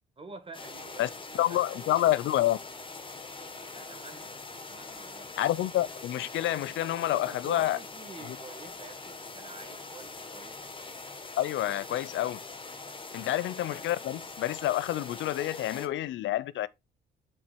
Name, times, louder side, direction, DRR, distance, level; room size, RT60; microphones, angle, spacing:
voice 1, 0.2-2.0 3.6-4.3 4.6-5.3 7.0-10.6 13.1-13.4, right 3 dB, 25° right, 2.1 m, -48 dB
sound 1, 0.5-15.9, left 3 dB, 25° left, 1.5 m, -43 dB
voice 2, 1.3-2.6 5.4-7.8 8.2-8.4 11.4-12.4 13.1-16.7, left 13 dB, 75° left, 0.6 m, -28 dB
7.8 x 4.5 x 4.3 m
cardioid pair, 90°, 20 cm